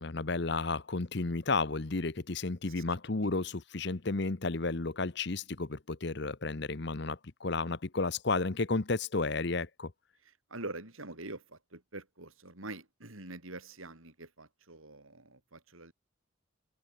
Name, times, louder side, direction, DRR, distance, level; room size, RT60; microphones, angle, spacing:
voice 1, 0.0-9.9, left 3 dB, 55° left, 1.0 m, -32 dB
voice 2, 10.2-15.9, right 2 dB, 80° right, 4.9 m, -45 dB
open air
head